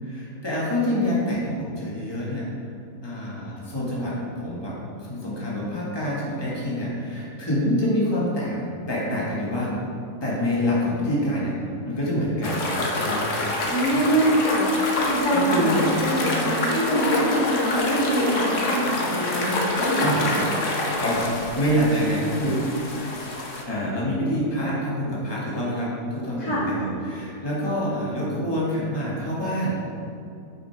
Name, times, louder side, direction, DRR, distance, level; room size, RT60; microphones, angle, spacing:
voice 1, 0.0-2.5 3.0-4.7 5.0-9.8 10.2-11.5 11.8-12.6 12.9-13.3 13.9-14.0 15.0-15.8 16.2-16.4 20.0-20.2 21.0-21.3 21.5-22.6 23.7-29.8, equal, 15° left, -6 dB, 1.7 m, -26 dB
sound 1, 12.4-23.6, left 2 dB, 55° left, 1.3 m, -27 dB
voice 2, 13.7-20.4 26.4-26.7, equal, 85° left, -8 dB, 2.9 m, -24 dB
8.5 x 5.9 x 4.7 m, 2.6 s
omnidirectional pair, 1.6 m